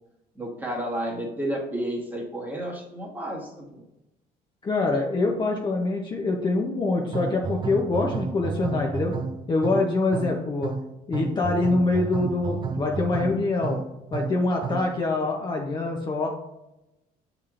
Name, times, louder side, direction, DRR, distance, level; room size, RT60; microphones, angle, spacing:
voice 1, 0.3-3.8, right 1 dB, 10° right, -2 dB, 1.2 m, -31 dB
voice 2, 4.6-9.1 9.5-10.7 11.1-13.8 14.1-16.3, left 3 dB, 25° left, 0 dB, 0.6 m, -25 dB
sound 1, 7.1-15.0, right 5 dB, 25° right, 0.3 m, -32 dB
6.5 x 2.9 x 2.4 m, 0.91 s
cardioid pair, 110°, 17 cm